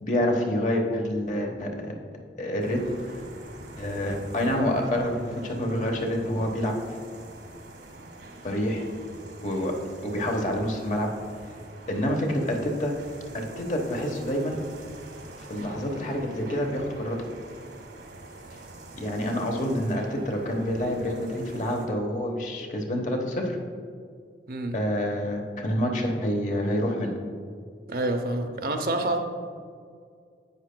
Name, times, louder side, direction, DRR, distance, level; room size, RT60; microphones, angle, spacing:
voice 1, 0.0-1.9 2.4-2.8 3.8-6.7 8.4-8.9 9.4-9.7 10.0-11.1 11.9-12.9 13.3-14.6 15.5-17.2 19.0-23.6 24.7-27.1, left 1 dB, 45° left, 2 dB, 1.0 m, -27 dB
sound 1, 2.6-21.9, right 2 dB, 85° right, 1.5 m, -45 dB
voice 2, 27.9-29.2, right 2 dB, 55° right, 5 dB, 0.7 m, -27 dB
10.5 x 8.6 x 2.2 m, 2.2 s
head